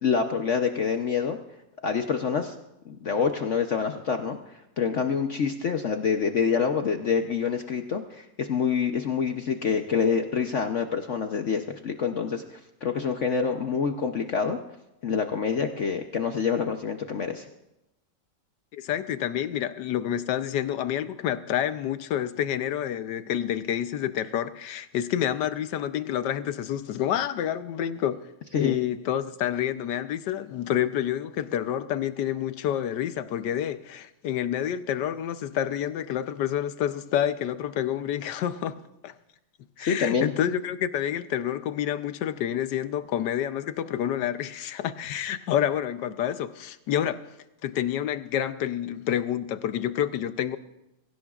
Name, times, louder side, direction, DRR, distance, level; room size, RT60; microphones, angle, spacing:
voice 1, 0.0-1.4 1.8-2.6 2.9-4.4 4.8-14.6 15.0-17.4 28.5-28.7 39.8-40.3, left 6 dB, 55° left, 0.9 m, -26 dB
voice 2, 18.7-28.3 28.6-39.1 39.8-47.3 47.6-50.6, left 10 dB, 75° left, 1.3 m, -28 dB
22.5 x 17.0 x 2.4 m
omnidirectional pair, 1.9 m